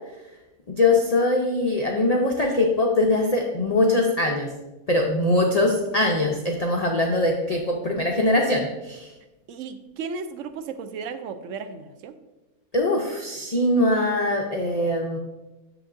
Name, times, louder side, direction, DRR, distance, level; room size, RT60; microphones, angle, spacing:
voice 1, 0.7-4.5 4.9-9.1 12.7-15.2, left 2 dB, 75° left, 1 dB, 0.3 m, -22 dB
voice 2, 9.5-12.1, right 5 dB, 70° right, 9 dB, 0.8 m, -35 dB
7.7 x 6.7 x 2.5 m, 1.1 s
omnidirectional pair, 1.6 m